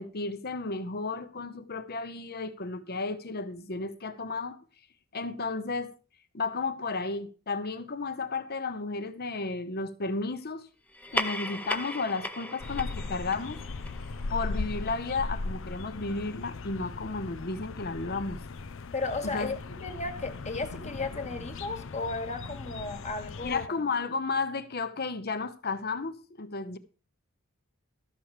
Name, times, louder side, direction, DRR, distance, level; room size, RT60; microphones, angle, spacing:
voice 1, 0.0-4.6 5.1-5.9 6.3-10.7 11.1-13.6 14.3-18.4 19.3-19.5 23.4-26.8, left 3 dB, 50° left, 1.0 m, -33 dB
sound 1, 10.9-15.8, left 1 dB, 5° left, 0.7 m, -37 dB
sound 2, 12.6-23.7, left 3 dB, 65° left, 0.6 m, -38 dB
voice 2, 18.9-23.7, left 3 dB, 35° left, 1.6 m, -34 dB
13.0 x 7.4 x 5.0 m
head